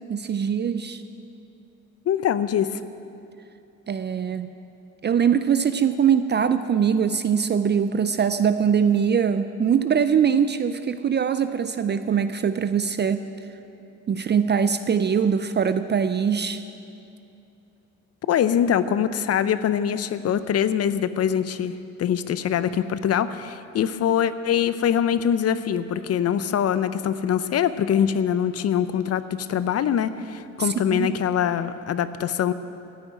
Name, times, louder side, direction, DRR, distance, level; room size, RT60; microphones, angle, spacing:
voice 1, 0.1-1.0 3.9-4.5 5.0-13.2 14.1-16.6 30.6-31.2, right 7 dB, 35° right, 11 dB, 0.5 m, -22 dB
voice 2, 2.1-2.8 18.3-32.5, left 9 dB, 55° left, 13 dB, 0.6 m, -23 dB
14.0 x 6.2 x 9.9 m, 2.7 s
cardioid pair, 90°, 30 cm